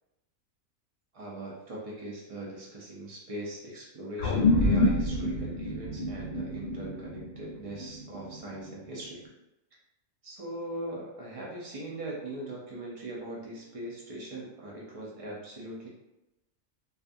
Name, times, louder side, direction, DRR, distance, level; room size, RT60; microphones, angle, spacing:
voice 1, 1.1-9.2 10.2-15.9, right 1 dB, 70° right, -4 dB, 0.3 m, -40 dB
sound 1, 4.2-8.9, left 2 dB, 60° left, 0.8 m, -28 dB
2.4 x 2.4 x 2.5 m, 0.93 s
omnidirectional pair, 1.4 m